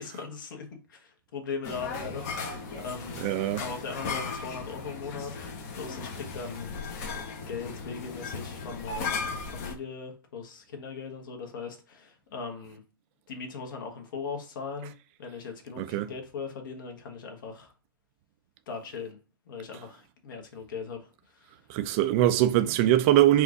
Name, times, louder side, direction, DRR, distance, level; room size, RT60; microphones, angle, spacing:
voice 1, 0.0-3.2 3.6-5.4 5.7-6.8 7.5-12.8 13.3-14.9 15.2-17.7 18.7-19.2 19.5-21.5, left 5 dB, 60° left, 1.3 m, -39 dB
sound 1, 1.6-9.7, left 4 dB, 40° left, 0.9 m, -36 dB
voice 2, 3.2-3.6 15.8-16.1 21.7-23.4, right 13 dB, 35° right, 0.4 m, -22 dB
4.4 x 2.5 x 3.9 m
hypercardioid pair, 140°, 12 cm